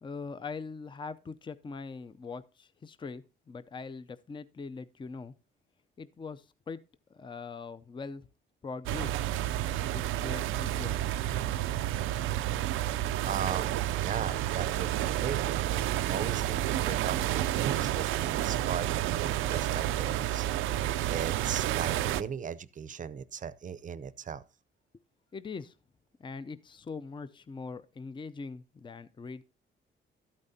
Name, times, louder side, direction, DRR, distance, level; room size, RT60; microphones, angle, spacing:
voice 1, 0.0-5.3 6.0-6.8 7.1-8.3 8.6-9.3 9.6-11.6 25.3-25.7 26.2-29.4, left 4 dB, 25° left, 0.5 m, -42 dB
sound 1, 8.9-22.2, right 13 dB, 85° right, 0.5 m, -30 dB
voice 2, 13.2-15.5 16.0-20.5 21.1-24.4, right 7 dB, 40° right, 0.6 m, -38 dB
12.5 x 8.6 x 2.7 m
cardioid pair, 90°, 20 cm